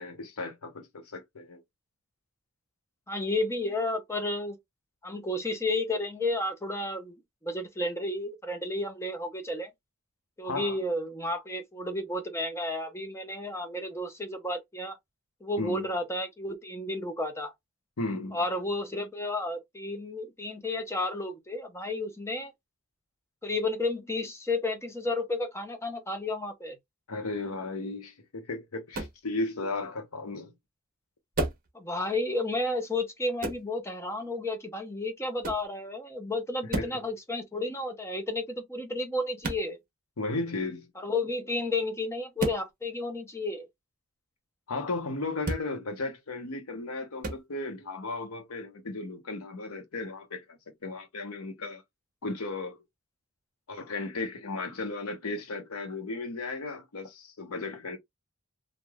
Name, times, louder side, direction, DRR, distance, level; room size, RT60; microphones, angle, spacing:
voice 1, 0.0-1.6 10.4-10.8 15.6-15.9 18.0-18.4 27.1-30.5 36.7-37.0 40.2-40.9 44.7-51.8 52.2-52.8 53.7-58.0, left 3 dB, 85° left, 0.9 m, -35 dB
voice 2, 3.1-4.6 5.0-7.2 7.4-9.7 10.4-15.0 15.4-17.5 18.3-22.5 23.4-26.7 31.7-39.8 41.0-43.7, left 2 dB, 10° left, 0.6 m, -32 dB
sound 1, 28.9-29.2 31.3-31.7 33.4-33.7 35.4-35.7 36.7-37.0 39.4-39.7 42.4-42.6 45.4-45.7 47.2-47.4, right 2 dB, 40° right, 0.9 m, -32 dB
3.2 x 2.5 x 2.2 m
head